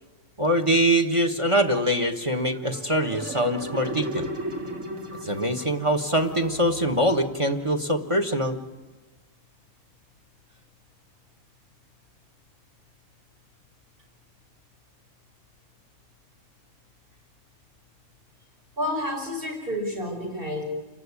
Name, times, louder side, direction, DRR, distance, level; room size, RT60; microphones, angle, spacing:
voice 1, 0.4-4.3 5.2-8.6, equal, 25° right, 7 dB, 1.4 m, -23 dB
sound 1, 2.4-7.8, right 1 dB, 80° right, 3.3 m, -36 dB
voice 2, 18.8-20.6, left 1 dB, 40° right, 1 dB, 6.1 m, -30 dB
27.5 x 15.5 x 9.8 m, 1.3 s
omnidirectional pair, 1.4 m